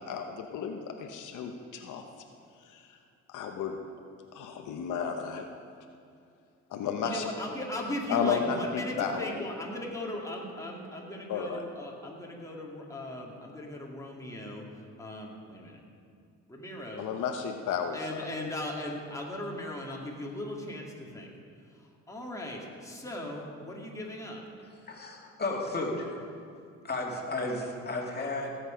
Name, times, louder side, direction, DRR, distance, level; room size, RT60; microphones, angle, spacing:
voice 1, 0.0-2.0 2.6-3.0 3.3-3.8 4.3-5.5 6.7-7.2 8.1-9.4 11.3-11.6 17.0-18.3, left 6 dB, 80° left, 4 dB, 0.9 m, -33 dB
voice 2, 7.0-14.7 15.0-15.8 16.5-17.1 17.9-21.3 21.7-24.4, left 1 dB, 10° left, -2 dB, 2.4 m, -38 dB
voice 3, 24.9-26.3 26.8-28.6, left 2 dB, 35° left, -1 dB, 2.5 m, -33 dB
17.5 x 8.0 x 5.2 m, 2.4 s
cardioid pair, 90°, 30 cm